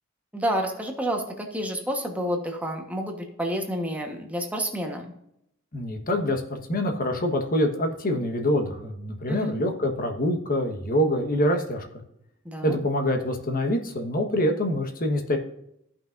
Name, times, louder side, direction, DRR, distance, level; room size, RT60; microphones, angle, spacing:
voice 1, 0.3-5.1 9.3-9.5 12.4-12.8, equal, 5° right, 2 dB, 1.2 m, -29 dB
voice 2, 5.7-11.8 12.6-15.4, left 1 dB, 45° left, 4 dB, 1.4 m, -25 dB
14.5 x 5.8 x 2.6 m, 0.76 s
head